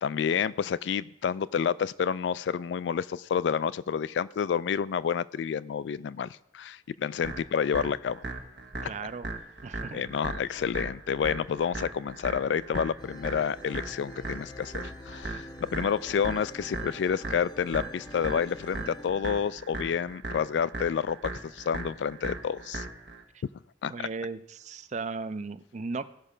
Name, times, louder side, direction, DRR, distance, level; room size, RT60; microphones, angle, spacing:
voice 1, 0.0-6.3 6.5-8.2 8.8-8.9 9.9-22.9 23.8-24.1, left 7 dB, 85° left, 17 dB, 0.3 m, -29 dB
sound 1, 7.2-23.2, right 2 dB, 75° right, 1.1 m, -38 dB
voice 2, 8.8-9.3 9.6-10.0 23.9-26.1, right 4 dB, 40° right, 13 dB, 0.5 m, -36 dB
sound 2, 13.0-19.1, left 2 dB, 25° left, 0.5 m, -47 dB
16.0 x 5.4 x 5.0 m, 0.78 s
head